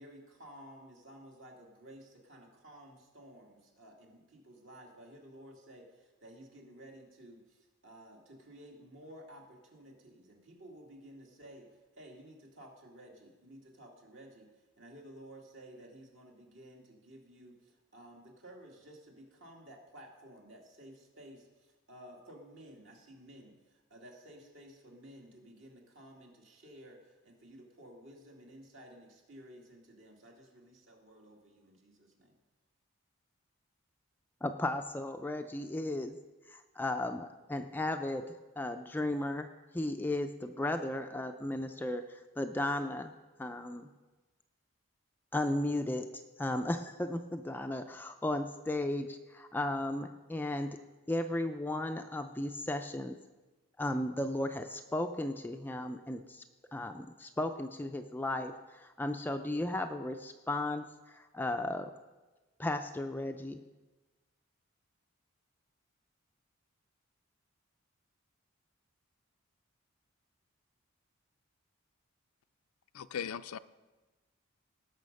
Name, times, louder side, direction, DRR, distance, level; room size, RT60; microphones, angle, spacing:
voice 1, 0.0-11.7 11.9-14.5 14.8-32.4, right 1 dB, 60° right, -1 dB, 2.3 m, -54 dB
voice 2, 34.4-36.2 36.5-39.5 39.7-43.1 43.4-43.9 45.3-50.8 51.1-53.2 53.8-56.4 56.7-61.9 62.6-63.6, left 1 dB, 10° left, 6 dB, 0.4 m, -35 dB
voice 3, 72.9-73.6, left 8 dB, 85° left, 13 dB, 0.4 m, -38 dB
18.5 x 6.4 x 5.3 m, 1.2 s
head